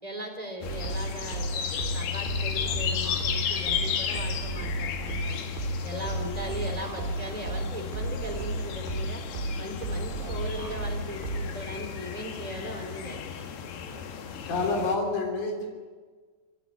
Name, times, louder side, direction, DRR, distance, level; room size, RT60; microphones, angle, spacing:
voice 1, 0.0-5.5 5.8-9.2 9.6-13.4, equal, 10° right, 1 dB, 3.4 m, -38 dB
sound 1, 0.6-15.0, left 8 dB, 75° left, 3.5 m, -34 dB
sound 2, 0.7-11.7, right 3 dB, 85° right, 4.2 m, -34 dB
voice 2, 14.4-15.7, left 3 dB, 50° left, 1 dB, 4.8 m, -28 dB
25.5 x 11.0 x 9.9 m, 1.5 s
omnidirectional pair, 4.7 m